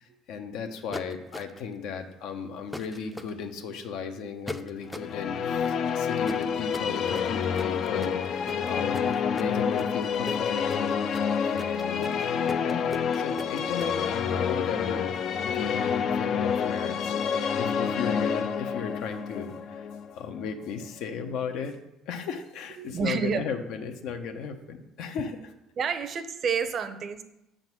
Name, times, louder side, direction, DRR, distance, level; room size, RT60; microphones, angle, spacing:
voice 1, 0.0-11.0 11.5-12.2 12.6-12.9 13.1-17.1 17.6-19.9 20.2-21.8 22.1-25.5, left 6 dB, 75° left, 6 dB, 0.9 m, -35 dB
sound 1, 0.9-1.7 2.7-3.3 4.5-5.2 6.2-14.0, left 1 dB, 5° left, 0.5 m, -40 dB
sound 2, 4.9-21.0, left 7 dB, 55° left, 0.5 m, -28 dB
voice 2, 22.8-23.4 25.8-27.2, right 6 dB, 50° right, 11 dB, 0.7 m, -30 dB
6.8 x 3.9 x 6.2 m, 0.89 s
supercardioid pair, 95°, 0 cm